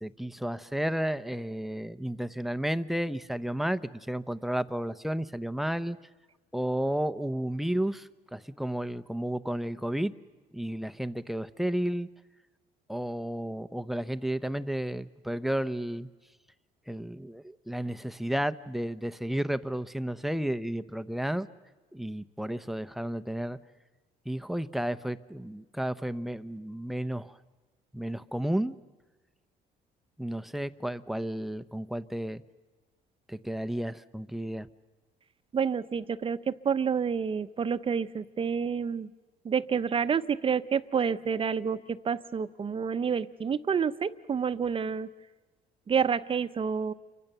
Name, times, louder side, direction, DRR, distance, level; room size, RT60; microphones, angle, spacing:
voice 1, 0.0-6.0 6.5-10.1 10.5-12.1 12.9-16.1 16.9-21.5 21.9-23.6 24.3-27.4 27.9-28.8 30.2-32.4 33.3-34.7, right 1 dB, ahead, 13 dB, 0.8 m, -32 dB
voice 2, 35.5-39.1 39.4-45.1 45.9-46.9, right 6 dB, 30° right, 12 dB, 0.9 m, -29 dB
29.5 x 24.5 x 6.8 m, 1.3 s
cardioid pair, 110°, 17 cm